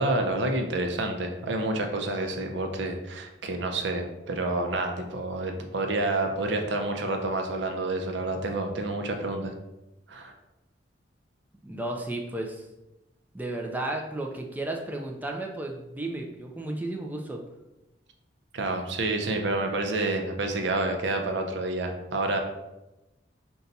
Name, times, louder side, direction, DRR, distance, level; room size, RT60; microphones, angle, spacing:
voice 1, 0.0-9.5 10.1-10.3 18.5-22.4, right 2 dB, 70° right, 4 dB, 0.5 m, -29 dB
voice 2, 11.6-12.7 13.3-17.4, right 2 dB, 10° right, 1 dB, 0.4 m, -33 dB
4.0 x 2.3 x 3.9 m, 0.98 s
head